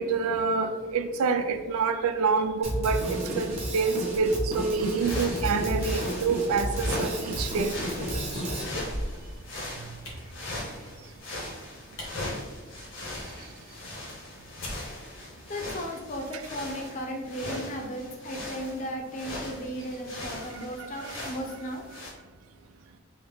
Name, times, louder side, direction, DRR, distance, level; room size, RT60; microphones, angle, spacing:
voice 1, 0.0-7.8, right 4 dB, 85° right, 7 dB, 0.4 m, -27 dB
Drum kit, 2.6-8.6, right 1 dB, 30° right, 0.8 m, -32 dB
sound 1, 4.8-22.1, left 1 dB, 65° left, 1.0 m, -39 dB
sound 2, 6.4-6.8 7.4-9.4 10.0-10.3 11.4-11.5 12.0-12.1 12.5-12.6 12.8-13.2, equal, 85° left, 1.3 m, -39 dB
voice 2, 15.5-21.8, equal, 35° left, 0 dB, 0.6 m, -35 dB
3.6 x 2.7 x 3.5 m, 1.3 s
head